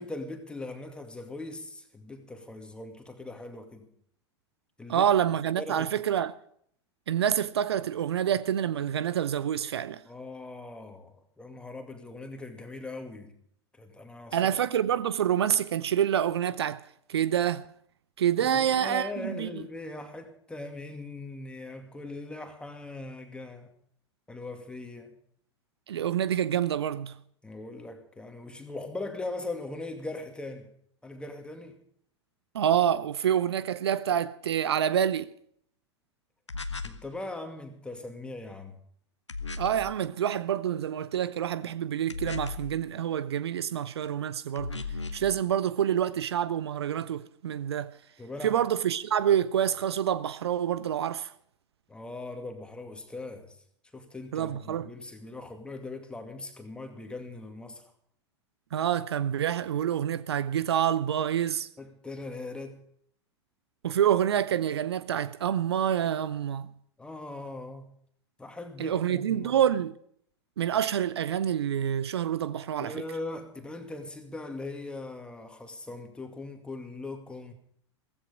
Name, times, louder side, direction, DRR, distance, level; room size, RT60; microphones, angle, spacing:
voice 1, 0.0-3.9 4.8-5.1 5.6-5.9 10.0-13.3 13.8-14.6 18.4-23.7 24.3-25.1 27.4-30.7 31.0-31.8 36.8-38.8 48.2-48.5 51.9-53.6 53.9-57.8 61.8-62.8 67.0-67.9 68.4-69.6 72.8-77.5, left 2 dB, 5° left, 2.4 m, -40 dB
voice 2, 4.9-6.3 7.1-10.0 14.3-16.8 17.1-17.6 18.2-19.5 25.9-27.1 32.5-35.3 39.6-44.8 45.1-47.9 48.4-51.3 54.3-54.9 58.7-61.7 63.8-66.7 68.8-69.9 70.6-73.0, right 9 dB, 65° right, 0.7 m, -27 dB
sound 1, 36.5-37.1 39.3-39.9 42.1-42.8 44.6-45.3, left 4 dB, 85° left, 0.9 m, -36 dB
16.5 x 15.0 x 5.2 m
figure-of-eight pair, 90°, 15 cm